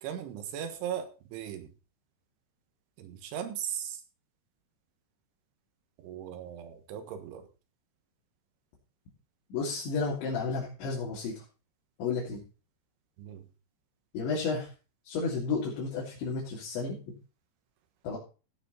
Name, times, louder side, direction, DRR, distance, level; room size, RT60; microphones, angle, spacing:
voice 1, 0.0-1.7 3.0-4.0 6.0-7.5 13.2-13.5, right 9 dB, 90° right, 7 dB, 3.9 m, -38 dB
voice 2, 9.5-11.3 12.0-12.4 14.1-14.7 15.1-17.0 18.0-18.2, left 4 dB, 70° left, -5 dB, 5.3 m, -32 dB
16.5 x 7.3 x 4.2 m, 0.33 s
omnidirectional pair, 5.4 m